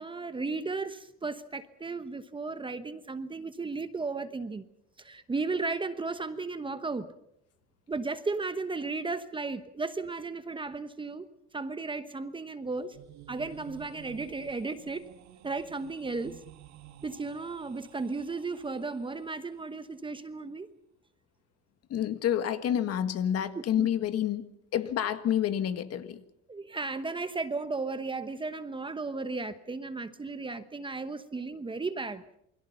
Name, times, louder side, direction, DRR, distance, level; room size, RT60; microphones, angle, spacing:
voice 1, 0.0-4.6 5.0-7.1 7.9-11.3 11.5-13.0 13.3-15.1 15.4-16.4 17.0-20.7 23.5-23.9 26.5-32.2, right 3 dB, 15° right, 11 dB, 1.1 m, -35 dB
sound 1, 12.5-19.5, right 13 dB, 60° right, 1.6 m, -52 dB
voice 2, 21.9-26.2, left 10 dB, 50° left, 10 dB, 1.7 m, -29 dB
28.5 x 21.5 x 5.7 m, 0.76 s
cardioid pair, 125°, 32 cm